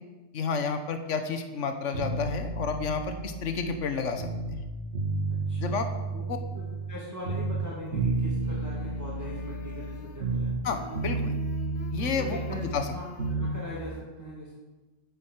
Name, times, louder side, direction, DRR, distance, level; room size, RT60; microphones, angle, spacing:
voice 1, 0.3-4.6 5.6-5.9 10.6-11.4 11.9-12.9, left 5 dB, 70° left, 7 dB, 1.5 m, -31 dB
sound 1, 1.9-4.6 4.9-7.0 7.2-10.7 10.9-13.6, right 3 dB, 70° right, 2.2 m, -31 dB
voice 2, 5.3-5.8 6.1-6.2 6.5-10.6 12.2-14.6, equal, 15° right, -6 dB, 2.5 m, -41 dB
sound 2, 7.6-8.0 8.3-10.4 10.7-14.0, left 2 dB, 45° left, 1.2 m, -48 dB
10.0 x 9.7 x 8.1 m, 1.2 s
omnidirectional pair, 1.3 m